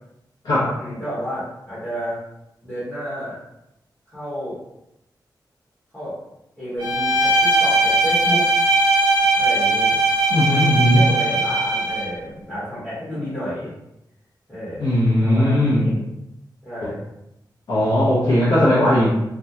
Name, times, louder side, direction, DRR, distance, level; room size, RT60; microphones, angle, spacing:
voice 1, 0.8-2.2 2.6-3.4 4.1-4.6 5.9-6.2 6.6-8.5 9.3-9.9 10.9-13.7 14.5-14.9 15.2-16.0 16.6-17.0, equal, 10° left, -12 dB, 1.1 m, -31 dB
Bowed string instrument, 6.8-12.2, right 2 dB, 85° right, 0.8 m, -19 dB
voice 2, 10.3-11.1 14.8-15.9 16.8-16.9 17.7-19.1, left 1 dB, 65° left, -10 dB, 0.7 m, -18 dB
2.7 x 2.2 x 2.3 m, 0.87 s
wide cardioid pair, 140°, 8 cm